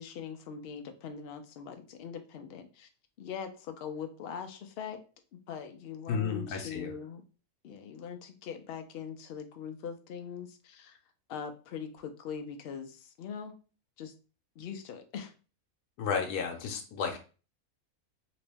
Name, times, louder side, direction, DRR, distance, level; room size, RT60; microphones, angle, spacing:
voice 1, 0.0-2.9 3.2-5.0 5.5-7.2 7.6-11.0 11.3-13.6 14.0-14.1 14.6-15.3, left 7 dB, 65° left, 6 dB, 0.5 m, -42 dB
voice 2, 6.1-6.9 16.0-17.2, left 6 dB, 90° left, 3 dB, 1.2 m, -32 dB
3.0 x 3.0 x 3.3 m, 0.35 s
omnidirectional pair, 1.6 m